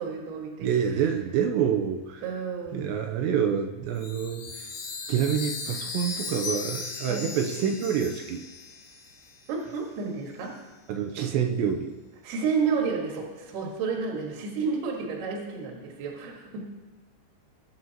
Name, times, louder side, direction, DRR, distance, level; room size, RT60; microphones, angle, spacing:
voice 1, 0.0-1.0 2.2-2.8 7.1-7.3 9.5-10.6 12.2-16.7, right 5 dB, 65° right, -1 dB, 3.3 m, -31 dB
voice 2, 0.6-2.2 2.7-4.7 5.1-8.4 10.9-12.0, right 8 dB, 85° right, 4 dB, 2.8 m, -27 dB
Chime, 3.9-9.5, left 4 dB, 80° left, 4.4 m, -37 dB
20.5 x 9.4 x 2.9 m, 1.3 s
omnidirectional pair, 5.4 m